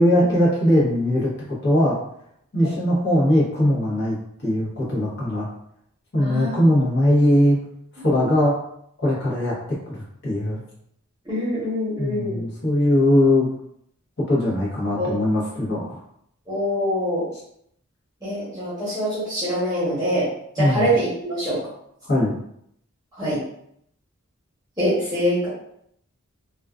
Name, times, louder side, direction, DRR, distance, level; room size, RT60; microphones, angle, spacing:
voice 1, 0.0-2.0 2.5-4.2 4.4-5.5 6.1-7.6 8.0-8.6 9.0-9.6 9.9-10.6 12.0-13.5 14.3-16.0 20.6-20.8 22.0-22.3, left 1 dB, 55° left, -6 dB, 0.9 m, -20 dB
voice 2, 6.2-6.9 8.1-8.3 11.2-12.4 15.0-15.1 16.5-17.3 18.2-20.3 20.5-21.6 23.1-23.4 24.8-25.5, equal, 15° right, -11 dB, 0.8 m, -24 dB
2.3 x 2.3 x 2.3 m, 0.72 s
head